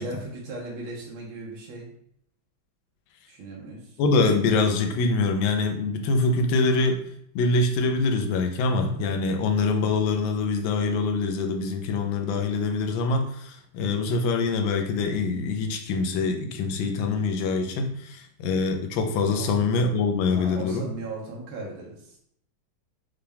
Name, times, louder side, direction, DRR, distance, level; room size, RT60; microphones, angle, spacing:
voice 1, 0.0-2.0 3.3-4.0 19.3-19.5 20.3-22.2, right 2 dB, 90° right, -3 dB, 1.8 m, -37 dB
voice 2, 4.0-7.0 7.3-20.9, left 3 dB, 75° left, 4 dB, 1.4 m, -24 dB
5.7 x 2.3 x 3.4 m, 0.67 s
omnidirectional pair, 2.2 m